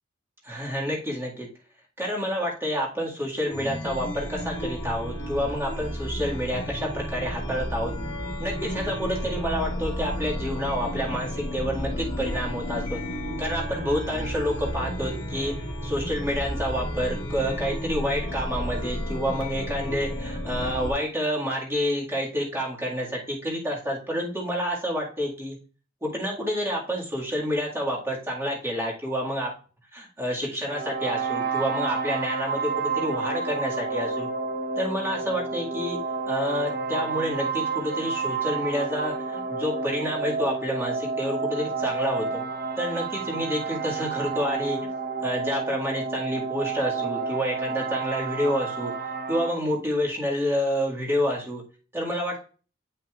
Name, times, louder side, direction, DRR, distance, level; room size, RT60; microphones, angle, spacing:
voice 1, 0.4-1.5 2.0-7.9 8.4-13.0 13.4-15.5 15.8-25.6 26.0-29.5 29.9-34.3 34.8-36.0 36.3-42.4 42.8-44.8 45.2-48.9 49.3-51.6 51.9-52.4, equal, 15° right, -4 dB, 2.0 m, -28 dB
Chime, 3.5-20.9, equal, 85° left, 1.6 m, -32 dB
sound 1, 30.7-49.5, right 4 dB, 50° right, 1.0 m, -30 dB
10.0 x 5.7 x 2.4 m, 0.38 s
head